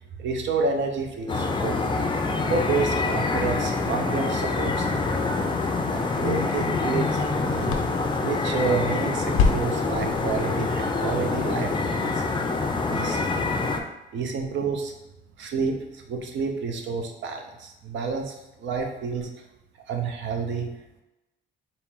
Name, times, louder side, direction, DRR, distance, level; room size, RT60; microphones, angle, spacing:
voice 1, 0.2-2.1 2.5-4.9 5.1-5.3 5.9-7.8 8.2-11.7 12.0-12.2 12.9-13.3 14.1-14.9 15.4-19.3 19.9-20.7, right 4 dB, 70° right, 3 dB, 0.7 m, -29 dB
sound 1, 1.3-13.8, left 3 dB, 25° left, 0.4 m, -26 dB
sound 2, 5.8-12.4, left 5 dB, 85° left, 0.5 m, -32 dB
4.2 x 2.1 x 3.7 m, 0.96 s
cardioid pair, 90°, 20 cm